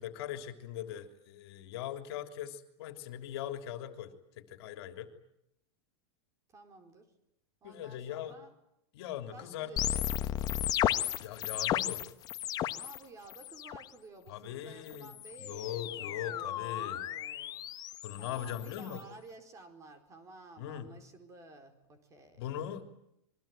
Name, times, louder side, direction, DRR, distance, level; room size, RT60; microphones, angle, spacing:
voice 1, 0.0-5.1 7.6-8.4 8.9-9.7 11.2-12.0 14.3-15.1 15.4-17.0 18.0-19.0 20.6-20.9 22.4-22.8, left 11 dB, 60° left, 7 dB, 3.3 m, -40 dB
voice 2, 6.5-7.1 7.6-8.5 9.3-10.3 10.9-11.3 12.8-22.4, right 3 dB, 20° right, 7 dB, 4.7 m, -53 dB
sound 1, 9.8-13.0 13.3-13.9 14.9-19.0, left 12 dB, 25° left, 1.1 m, -34 dB
27.5 x 23.0 x 9.1 m, 0.81 s
supercardioid pair, 155°, 15 cm